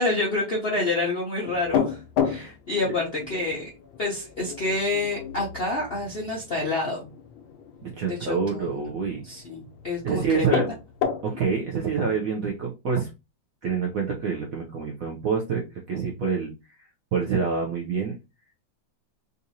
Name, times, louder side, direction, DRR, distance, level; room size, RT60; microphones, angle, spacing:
voice 1, 0.0-2.0 2.2-3.7 4.0-7.1 8.1-8.8 9.2-10.6, left 2 dB, 55° left, -3 dB, 0.6 m, -28 dB
sound 1, 1.5-12.3, left 8 dB, 80° left, 1.3 m, -33 dB
voice 2, 7.8-9.2 10.0-10.7 11.2-13.1 13.6-15.6 15.9-16.5 17.1-18.1, right 5 dB, 70° right, 0 dB, 0.8 m, -27 dB
3.8 x 2.6 x 2.7 m, 0.26 s
omnidirectional pair, 2.1 m